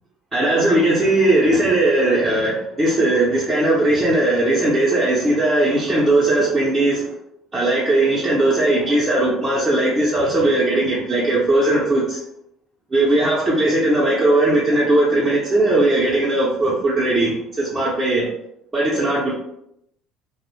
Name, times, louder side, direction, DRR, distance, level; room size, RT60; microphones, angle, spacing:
voice 1, 0.3-7.1 7.5-12.2 12.9-18.3 18.7-19.4, right 2 dB, 15° right, -7 dB, 0.6 m, -18 dB
2.5 x 2.0 x 3.0 m, 0.76 s
cardioid pair, 140°, 0 cm